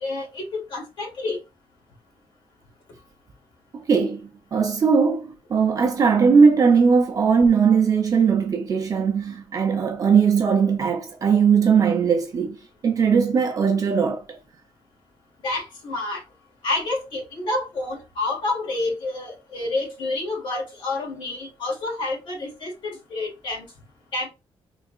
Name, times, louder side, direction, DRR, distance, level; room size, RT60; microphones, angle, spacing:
voice 1, 0.0-1.4 15.4-16.2 16.6-23.7 24.1-24.3, left 2 dB, 55° left, 2.0 m, -28 dB
voice 2, 3.7-12.5 12.8-14.4, right 6 dB, 35° right, 0.6 m, -19 dB
3.9 x 3.5 x 2.4 m
cardioid pair, 175°, 10 cm